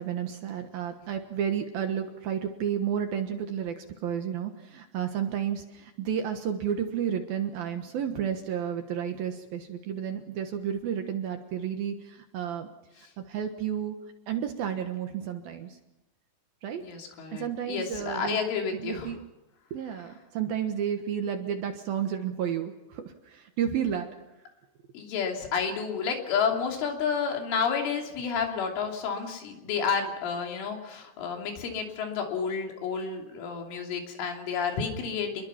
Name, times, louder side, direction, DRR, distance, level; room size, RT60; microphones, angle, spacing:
voice 1, 0.0-12.7 13.3-14.0 14.3-15.8 16.6-16.8 17.3-18.4 18.8-19.2 19.7-24.1, right 8 dB, 65° right, 6 dB, 2.6 m, -31 dB
voice 2, 16.8-19.2 24.9-35.4, left 6 dB, 85° left, 2 dB, 5.5 m, -30 dB
28.0 x 22.0 x 5.8 m, 0.98 s
omnidirectional pair, 5.5 m